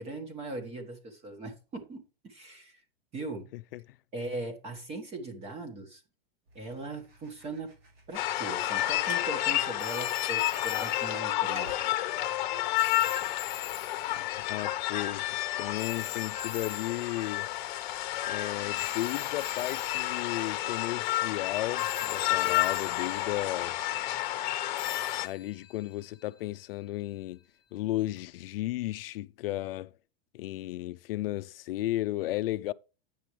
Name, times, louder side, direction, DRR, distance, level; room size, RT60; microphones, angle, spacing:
voice 1, 0.0-2.8 3.1-3.5 4.1-6.0 6.5-7.7 8.1-11.9, right 2 dB, 20° right, 1.6 m, -39 dB
voice 2, 3.5-4.0 14.5-17.5 18.2-23.8 25.2-27.4 27.7-29.9 30.3-32.7, left 16 dB, 70° left, 0.4 m, -34 dB
sound 1, 6.5-24.4, right 2 dB, 80° right, 5.3 m, -57 dB
sound 2, 8.1-25.3, left 15 dB, 50° left, 1.0 m, -31 dB
sound 3, 9.8-18.0 18.8-21.5 21.8-23.9 24.8-27.0 28.2-28.3, left 12 dB, 15° left, 1.1 m, -45 dB
9.3 x 7.6 x 3.2 m
supercardioid pair, 165°, 30 cm